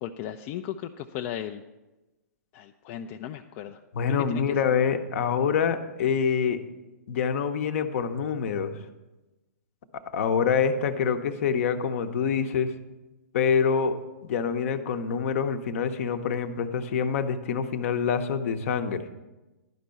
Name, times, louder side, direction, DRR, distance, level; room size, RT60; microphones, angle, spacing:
voice 1, 0.0-1.6 2.5-3.8 4.1-4.4, left 10 dB, 40° left, 5 dB, 0.4 m, -36 dB
voice 2, 3.9-6.6 7.1-8.7 10.1-12.7 13.3-14.0 14.2-19.0, left 6 dB, 60° left, 8 dB, 0.9 m, -26 dB
11.0 x 5.3 x 6.9 m, 1.1 s
hypercardioid pair, 125°, 9 cm